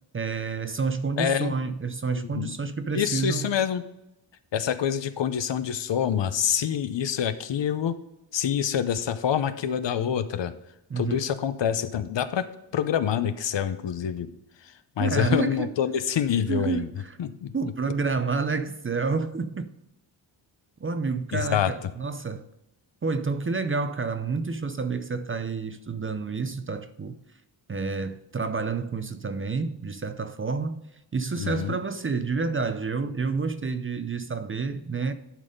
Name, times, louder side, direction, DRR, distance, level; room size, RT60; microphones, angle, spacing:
voice 1, 0.1-3.5 10.9-11.2 15.0-15.7 16.5-17.2 17.5-19.7 20.8-22.4 23.0-27.2 27.7-30.8 31.1-35.1, right 4 dB, 30° right, 0.5 m, -29 dB
voice 2, 1.2-1.5 2.1-2.5 2.9-3.8 4.5-8.0 8.3-10.5 11.0-12.5 12.7-14.3 14.6-16.9 17.2-17.5 21.3-21.7 31.4-31.8, left 9 dB, 65° left, 0.7 m, -26 dB
11.0 x 4.1 x 5.1 m
wide cardioid pair, 110°, 47 cm